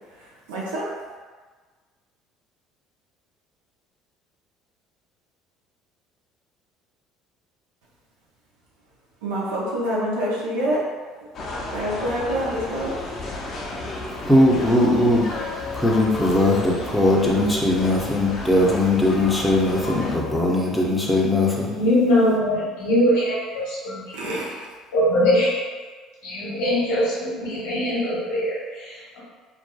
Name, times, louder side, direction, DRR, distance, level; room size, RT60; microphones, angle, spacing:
voice 1, 0.1-0.9 9.2-10.8 11.7-12.9 24.1-24.7, right 1 dB, 80° right, -5 dB, 0.6 m, -27 dB
sound 1, 11.3-20.2, left 2 dB, 50° left, 0.5 m, -32 dB
voice 2, 14.2-15.4 15.7-21.7, left 1 dB, 5° left, -3 dB, 0.6 m, -19 dB
voice 3, 21.7-24.4 24.9-25.6 26.2-29.2, equal, 80° left, -9 dB, 0.9 m, -22 dB
2.6 x 2.2 x 2.2 m, 1.4 s
hypercardioid pair, 65°, 0 cm